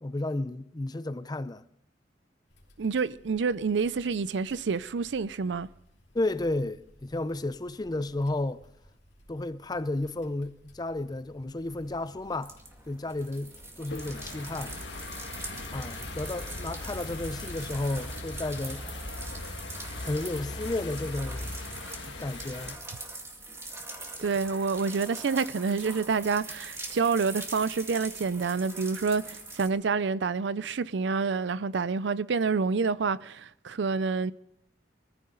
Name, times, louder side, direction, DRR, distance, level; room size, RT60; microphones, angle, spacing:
voice 1, 0.0-1.6 6.1-8.6 9.3-12.5 12.8-14.8 15.7-18.8 20.0-21.5 22.2-22.8, left 2 dB, 20° left, 0.5 m, -32 dB
sound 1, 2.5-18.5, equal, 70° left, 3.2 m, -58 dB
voice 2, 2.8-5.7 24.2-34.3, right 5 dB, 75° right, 0.5 m, -28 dB
sound 2, 11.6-29.7, right 2 dB, 15° right, 2.0 m, -43 dB
sound 3, 13.9-22.8, left 2 dB, 85° left, 1.7 m, -39 dB
24.0 x 14.5 x 3.9 m
head